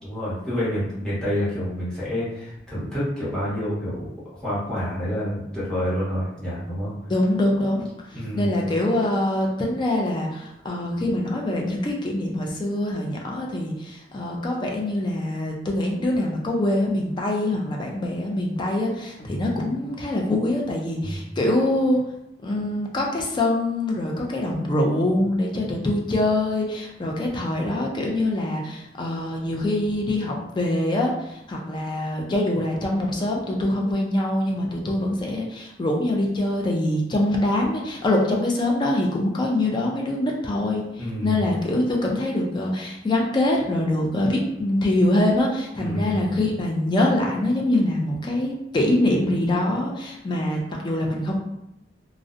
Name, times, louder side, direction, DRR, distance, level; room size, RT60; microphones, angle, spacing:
voice 1, 0.0-6.9 8.1-8.6 19.2-19.7 21.0-21.2 41.0-41.5 45.8-46.3, equal, 5° left, -10 dB, 0.9 m, -28 dB
voice 2, 7.1-7.9 8.1-22.0 22.4-51.4, left 1 dB, 25° left, -1 dB, 0.3 m, -24 dB
2.5 x 2.0 x 2.4 m, 0.84 s
head